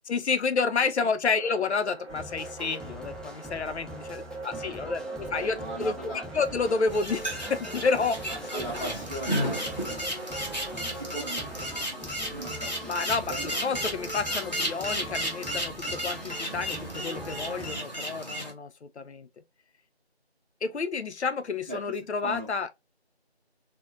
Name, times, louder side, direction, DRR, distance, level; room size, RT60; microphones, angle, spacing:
voice 1, 0.1-6.0 6.3-8.2 8.5-8.6 12.9-19.3 20.6-22.7, left 4 dB, 85° left, 0.5 m, -30 dB
sound 1, 1.3-11.7, right 3 dB, 85° right, 0.7 m, -43 dB
sound 2, 2.1-17.8, equal, ahead, 0.3 m, -43 dB
voice 2, 3.9-6.2 8.3-14.1 14.8-15.2 21.7-21.8 22.2-22.5, right 1 dB, 40° right, 0.7 m, -41 dB
sound 3, 6.9-18.5, equal, 40° left, 0.6 m, -33 dB
3.0 x 2.1 x 2.4 m
figure-of-eight pair, 180°, 33 cm